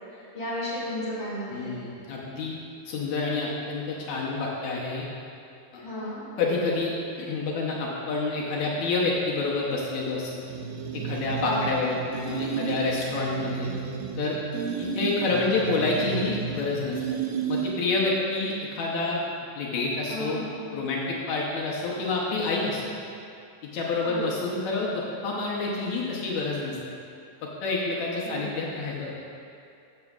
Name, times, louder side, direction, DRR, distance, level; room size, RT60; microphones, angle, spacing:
voice 1, 0.1-1.7 5.8-6.2 11.4-11.6 20.1-20.4 24.0-24.3 28.2-28.5, left 1 dB, 30° left, -9 dB, 1.3 m, -34 dB
voice 2, 1.5-2.5 2.8-5.1 5.7-5.8 6.4-10.4 10.9-13.8 14.2-14.4 14.8-17.0 17.5-19.2 19.6-20.4 20.7-22.9 23.6-26.8 27.4-29.1, left 3 dB, 75° left, -3 dB, 1.7 m, -28 dB
sound 1, 10.5-18.0, right 7 dB, 90° right, 1.8 m, -32 dB
13.0 x 7.1 x 2.4 m, 2.6 s
omnidirectional pair, 4.3 m